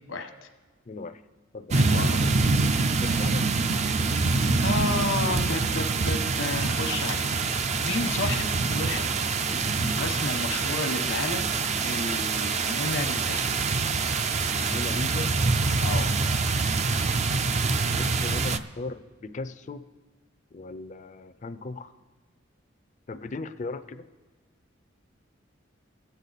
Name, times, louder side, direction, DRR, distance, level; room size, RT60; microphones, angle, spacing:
voice 1, 0.9-1.2 1.5-1.8 3.0-3.4 14.5-15.3 17.9-19.8 20.5-21.9 23.1-24.0, left 3 dB, 40° left, 11 dB, 0.4 m, -37 dB
voice 2, 1.7-2.4 4.6-7.3 7.8-9.0 9.5-11.5 11.8-13.4 15.8-16.1, left 3 dB, 75° left, 5 dB, 1.1 m, -32 dB
sound 1, 1.7-18.6, right 4 dB, 35° right, 0.4 m, -25 dB
21.5 x 8.1 x 4.1 m, 1.3 s
head